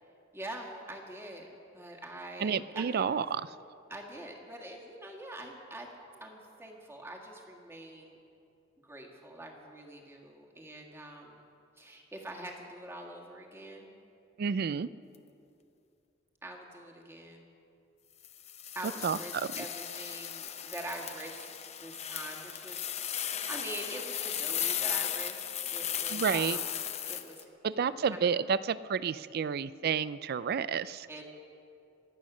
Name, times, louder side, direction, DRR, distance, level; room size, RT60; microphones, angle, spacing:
voice 1, 0.3-1.5 1.7-3.3 3.9-5.9 6.2-8.2 8.8-11.4 11.8-14.0 16.4-17.5 18.8-21.5 21.8-25.4 25.7-26.8 27.1-28.3 31.1-31.2, right 1 dB, 15° right, 0 dB, 1.9 m, -44 dB
voice 2, 2.4-3.4 14.4-14.9 19.0-19.5 26.1-26.6 27.6-31.1, right 6 dB, 55° right, 17 dB, 0.4 m, -30 dB
sound 1, 18.2-27.4, left 9 dB, 35° left, 0.7 m, -36 dB
24.5 x 8.5 x 6.2 m, 2.6 s
head